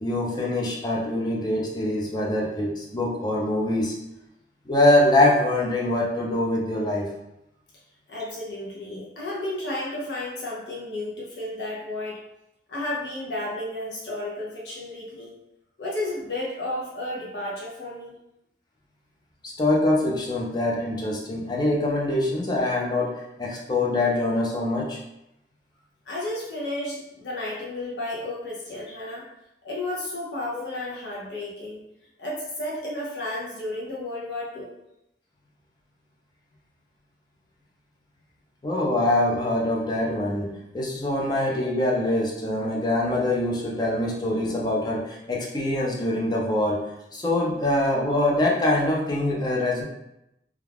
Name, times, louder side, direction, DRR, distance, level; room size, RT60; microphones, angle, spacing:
voice 1, 0.0-3.9 4.7-7.1 19.4-25.0 30.5-30.7 38.6-46.8 47.1-49.8, left 1 dB, 25° left, -3 dB, 0.5 m, -24 dB
voice 2, 8.1-12.2 12.7-15.4 15.8-18.2 26.1-29.2 29.6-31.9 32.2-34.7, left 1 dB, 70° left, -5 dB, 0.6 m, -32 dB
2.3 x 2.2 x 3.3 m, 0.86 s
head